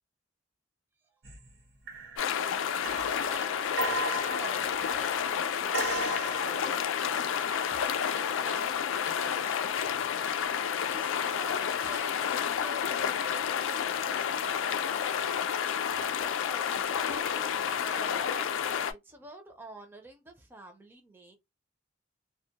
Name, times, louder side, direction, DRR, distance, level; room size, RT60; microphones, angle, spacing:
sound 1, 1.2-1.6 1.9-2.4 2.8-5.2 5.7-6.9 9.8-10.1, right 1 dB, 70° right, 0.9 m, -36 dB
sound 2, 2.2-18.9, left 8 dB, 90° left, 0.3 m, -30 dB
voice 1, 3.2-6.9 7.6-9.8 10.8-14.8 15.9-21.4, right 1 dB, 10° right, 0.4 m, -48 dB
2.2 x 2.1 x 2.8 m
head